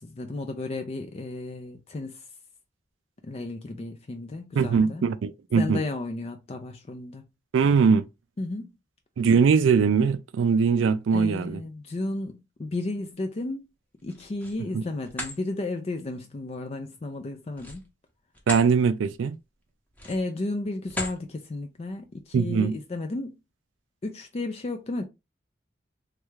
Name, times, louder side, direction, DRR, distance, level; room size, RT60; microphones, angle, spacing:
voice 1, 0.0-2.2 3.2-5.0 5.5-7.2 8.4-8.7 11.1-13.7 14.0-17.8 20.0-23.4 24.0-25.0, left 2 dB, 35° left, 0.4 m, -33 dB
voice 2, 4.6-5.8 7.5-8.1 9.2-11.6 14.7-14.8 18.5-19.4 22.3-22.7, right 5 dB, 85° right, 0.4 m, -21 dB
sound 1, 14.0-14.6 15.0-15.4 17.5-18.7 19.1-19.3 19.9-20.4 20.8-21.2, left 1 dB, 10° left, 0.8 m, -36 dB
3.2 x 2.4 x 3.1 m
head